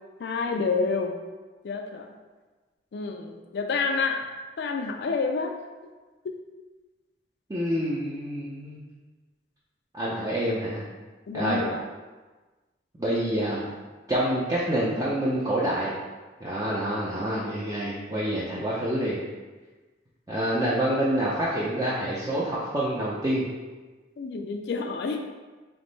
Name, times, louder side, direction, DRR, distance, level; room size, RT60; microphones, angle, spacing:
voice 1, 0.2-1.2 1.6-2.1 2.9-4.2 4.6-5.5 6.2-6.3 11.3-11.8 24.2-25.2, left 4 dB, 65° left, 3 dB, 0.3 m, -28 dB
voice 2, 7.5-8.8 9.9-10.8 11.3-11.6 13.0-13.6 14.1-15.9 16.4-19.2 20.3-23.5, right 1 dB, 20° right, -8 dB, 0.5 m, -27 dB
3.6 x 3.0 x 3.9 m, 1.3 s
head